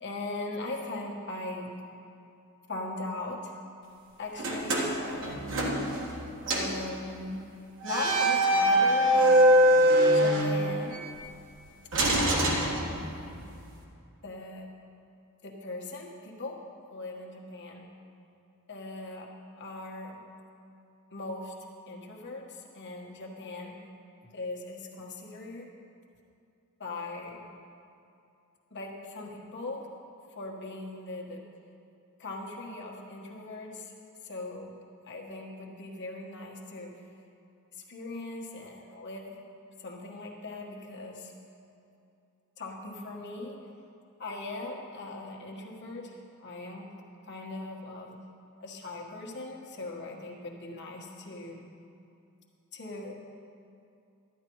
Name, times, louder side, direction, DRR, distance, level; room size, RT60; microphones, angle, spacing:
voice 1, 0.0-1.7 2.7-3.5 4.2-5.4 6.5-7.4 7.8-9.4 10.1-11.0 12.1-12.8 14.2-14.7 15.4-16.6 16.9-17.9 18.7-19.3 19.6-20.2 21.1-21.5 21.9-23.7 24.3-25.7 26.8-27.5 28.7-29.9 30.3-31.4 32.2-33.9 34.2-34.8 35.0-36.9 37.9-39.3 39.8-41.3 42.6-43.6 44.2-46.1 46.4-46.9 47.3-48.1 48.6-51.7 52.7-53.1, left 2 dB, 50° left, -1 dB, 1.4 m, -39 dB
sound 1, 4.4-6.2 6.5-6.8 7.8-11.0 11.9-13.3, right 1 dB, 60° right, 1.5 m, -23 dB
11.5 x 10.0 x 4.7 m, 2.6 s
head